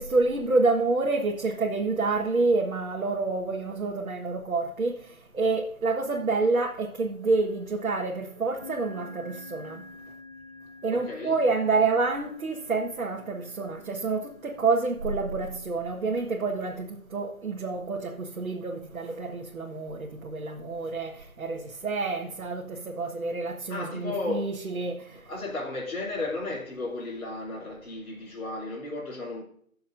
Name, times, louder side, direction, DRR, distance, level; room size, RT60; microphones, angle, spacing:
voice 1, 0.0-9.9 10.8-25.2, right 3 dB, 75° right, 1.6 m, -28 dB
sound 1, 7.2-7.7 8.6-15.7, left 3 dB, 5° left, 3.3 m, -48 dB
voice 2, 10.9-11.4 23.7-24.5 25.3-29.4, left 2 dB, 75° left, 3.4 m, -34 dB
19.5 x 6.8 x 2.6 m
hypercardioid pair, 165°, 42 cm